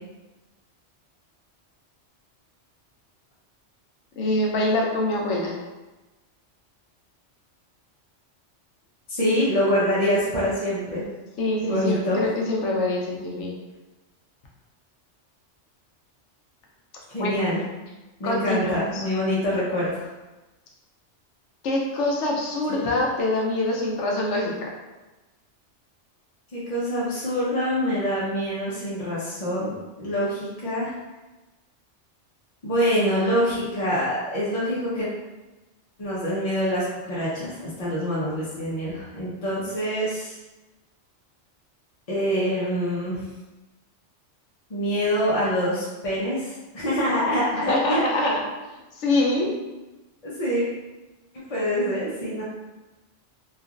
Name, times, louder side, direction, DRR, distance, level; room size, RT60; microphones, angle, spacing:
voice 1, 4.2-5.6 11.4-13.6 17.2-17.4 18.2-19.0 21.6-24.7 47.7-48.4 48.9-49.5, left 2 dB, 80° left, -2 dB, 1.0 m, -25 dB
voice 2, 9.1-11.0 11.6-12.2 17.1-17.6 18.2-20.1 22.7-22.8 26.5-29.7 30.0-30.9 32.6-35.1 36.0-40.4 42.1-43.2 44.7-48.0 50.2-50.6 51.5-52.4, equal, 40° left, -9 dB, 0.6 m, -25 dB
2.9 x 2.4 x 2.4 m, 1.1 s
omnidirectional pair, 1.2 m